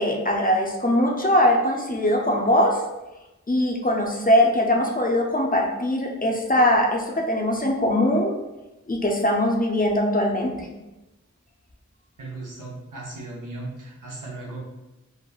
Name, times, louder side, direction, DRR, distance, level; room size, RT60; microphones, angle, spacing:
voice 1, 0.0-2.8 3.5-8.3 8.9-10.7, left 1 dB, 30° left, 0 dB, 0.4 m, -21 dB
voice 2, 12.2-14.6, right 2 dB, 80° right, -3 dB, 0.7 m, -36 dB
3.0 x 2.0 x 2.3 m, 1.0 s
wide cardioid pair, 40°, 31 cm